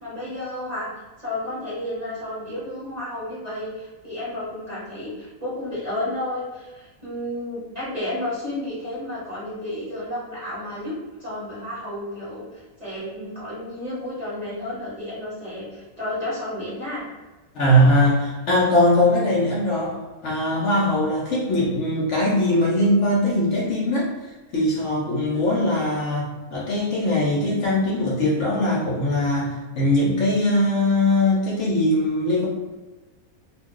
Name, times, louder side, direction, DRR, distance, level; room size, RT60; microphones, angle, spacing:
voice 1, 0.0-0.9 1.2-10.9 11.2-17.1, left 1 dB, 30° right, -9 dB, 1.0 m, -32 dB
voice 2, 17.5-20.0 20.2-24.1 24.5-32.5, left 1 dB, 65° left, -4 dB, 0.9 m, -21 dB
2.5 x 2.2 x 3.6 m, 1.2 s
omnidirectional pair, 1.5 m